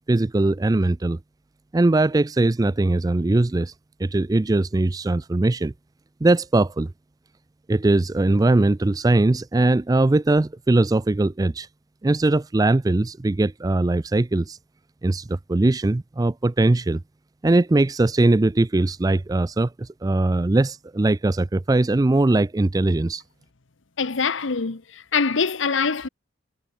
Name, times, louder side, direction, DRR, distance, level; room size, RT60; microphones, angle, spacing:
voice 1, 0.1-1.2 1.7-3.7 4.0-5.7 6.2-6.9 7.7-11.7 12.0-14.6 15.0-17.0 17.4-23.2, right 2 dB, 20° right, 0.4 m, -20 dB
voice 2, 24.0-26.1, left 5 dB, 70° left, 1.0 m, -24 dB
head